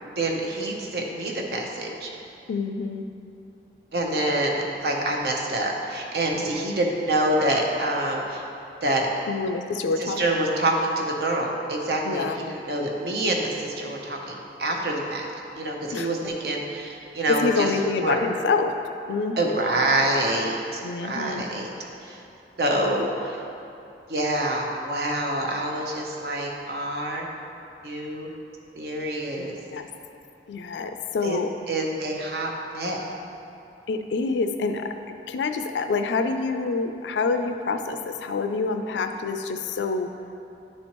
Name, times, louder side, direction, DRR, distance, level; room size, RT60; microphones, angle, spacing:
voice 1, 0.0-2.1 3.9-8.4 8.8-9.1 10.0-15.3 15.5-17.7 18.0-18.2 19.4-21.7 22.0-22.2 22.6-23.4 24.1-27.3 27.8-28.3 28.8-29.5 31.2-31.4 31.7-33.1, right 1 dB, 65° right, 0 dB, 0.8 m, -26 dB
voice 2, 2.5-3.0 6.3-6.5 9.3-10.2 12.0-12.4 15.9-16.1 17.3-18.7 19.1-19.6 20.8-21.4 29.4-29.9 30.5-31.5 33.9-34.9 35.3-40.1, left 4 dB, 85° left, 7 dB, 0.3 m, -27 dB
10.0 x 4.3 x 3.0 m, 2.7 s
head